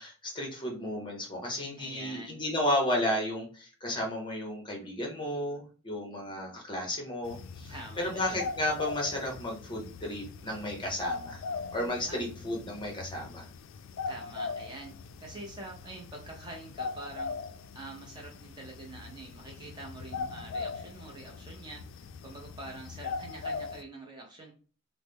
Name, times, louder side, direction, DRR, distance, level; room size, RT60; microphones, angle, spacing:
voice 1, 0.0-11.4 11.7-13.4, left 1 dB, 25° left, 0 dB, 0.8 m, -33 dB
voice 2, 1.8-2.4 7.7-8.5 12.1-12.2 14.1-14.9 15.2-17.3 17.7-24.5, right 2 dB, 20° right, 0 dB, 0.6 m, -45 dB
sound 1, 7.2-23.8, left 4 dB, 65° left, 0.3 m, -40 dB
3.1 x 2.0 x 3.5 m, 0.38 s
head